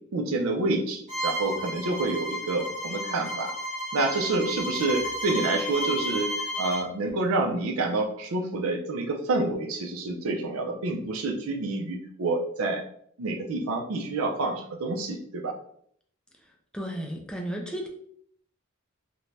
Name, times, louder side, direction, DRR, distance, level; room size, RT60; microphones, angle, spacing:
voice 1, 0.1-3.5 3.9-12.8 13.2-15.5, right 2 dB, 80° right, 2 dB, 0.5 m, -28 dB
Bowed string instrument, 1.1-6.9, equal, 40° right, 0.9 m, -32 dB
voice 2, 16.7-17.9, equal, 5° left, 1 dB, 0.4 m, -33 dB
2.6 x 2.2 x 3.1 m, 0.64 s
head